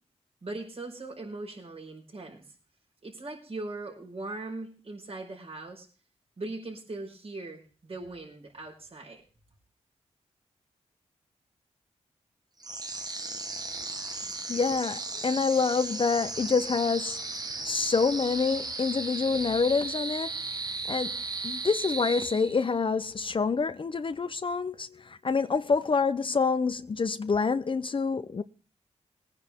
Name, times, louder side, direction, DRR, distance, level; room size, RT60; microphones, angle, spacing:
voice 1, 0.4-2.4 3.0-5.9 6.4-9.2, right 2 dB, 55° right, 4.9 m, -40 dB
sound 1, 12.6-22.8, right 3 dB, 35° right, 1.3 m, -35 dB
voice 2, 14.2-17.2 17.6-20.3 20.9-21.1 21.4-28.4, left 5 dB, 45° left, 0.7 m, -27 dB
20.5 x 9.8 x 3.6 m
cardioid pair, 75°, 12 cm